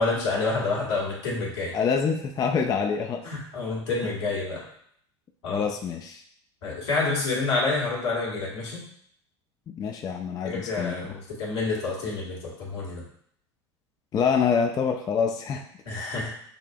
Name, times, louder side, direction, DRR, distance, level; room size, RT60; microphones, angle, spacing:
voice 1, 0.0-1.8 3.2-4.6 5.4-5.6 6.6-8.8 10.4-13.0 15.8-16.3, left 3 dB, 70° left, -4 dB, 1.4 m, -28 dB
voice 2, 1.7-3.3 4.0-4.1 5.5-6.2 9.7-11.1 14.1-15.7, left 6 dB, 25° left, 5 dB, 0.4 m, -26 dB
6.6 x 2.4 x 2.3 m, 0.66 s
figure-of-eight pair, 75°, 15 cm